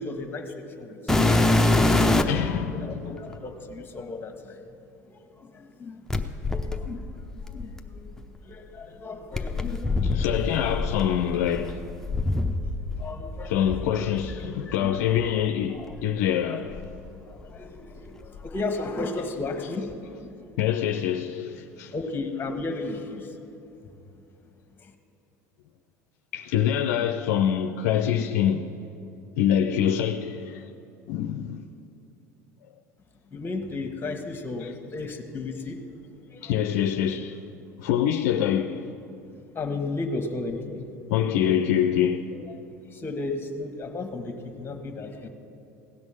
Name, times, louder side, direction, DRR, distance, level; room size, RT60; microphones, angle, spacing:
voice 1, 0.0-4.7 5.1-6.0 6.5-8.1 8.4-10.2 12.3-15.2 15.7-16.6 17.1-20.5 21.9-23.4 24.8-24.9 33.3-35.8 36.3-36.6 39.5-40.9 42.3-42.4 42.9-45.3, left 3 dB, 25° left, 1.4 m, -35 dB
sound 1, 1.1-2.5 3.3-3.4 6.1-8.2 9.3-13.1 13.3-14.4 15.2-15.3 15.9-16.0 16.7-17.8 18.1-18.6 19.9-20.0, left 2 dB, 5° left, 0.8 m, -25 dB
voice 2, 2.2-3.2 10.0-11.8 13.4-16.9 19.2-19.9 20.6-22.1 26.3-28.7 29.4-30.7 31.1-31.7 34.6-34.8 36.4-37.4 37.8-38.9 41.1-42.3, left 9 dB, 65° left, 0.5 m, -25 dB
16.5 x 6.2 x 7.3 m
hypercardioid pair, 75°, 9 cm